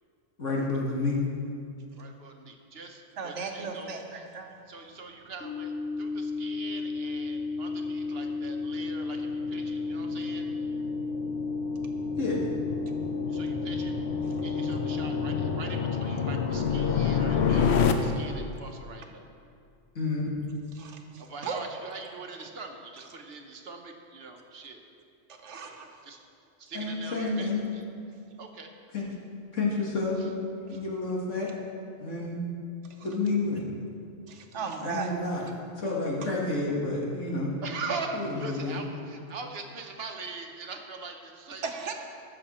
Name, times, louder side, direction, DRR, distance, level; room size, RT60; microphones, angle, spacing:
voice 1, 0.4-1.2 12.2-12.5 20.0-20.2 26.7-27.6 28.9-29.1 29.5-30.4 30.7-31.5 32.0-32.4 33.0-33.7 34.8-35.4 35.8-37.5 38.1-38.8, left 3 dB, 85° left, -3 dB, 2.2 m, -29 dB
voice 2, 2.0-3.9 4.7-5.7 6.0-10.4 13.3-13.9 14.4-19.2 21.2-24.8 26.0-26.2 26.6-27.5 28.4-28.7 34.5-34.8 37.6-41.9, right 4 dB, 55° right, 3 dB, 1.1 m, -41 dB
voice 3, 3.2-4.5 20.8-21.6 25.4-25.9 33.0-33.1 34.3-35.1 41.6-41.9, right 5 dB, 75° right, 4 dB, 1.3 m, -36 dB
sound 1, 5.4-15.4, left 3 dB, 5° left, 0.7 m, -33 dB
sound 2, 6.8-17.9, left 6 dB, 65° left, 0.9 m, -30 dB
15.0 x 7.0 x 4.3 m, 2.4 s
omnidirectional pair, 1.2 m